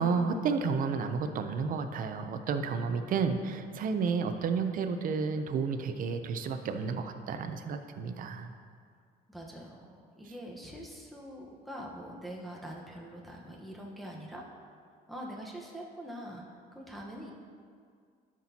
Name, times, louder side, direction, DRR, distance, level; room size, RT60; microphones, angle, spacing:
voice 1, 0.0-8.5, right 5 dB, 55° right, 8 dB, 0.7 m, -31 dB
voice 2, 9.3-14.5 15.1-16.4 16.7-17.3, equal, ahead, -3 dB, 1.1 m, -44 dB
11.5 x 6.1 x 2.9 m, 2.1 s
cardioid pair, 110°, 17 cm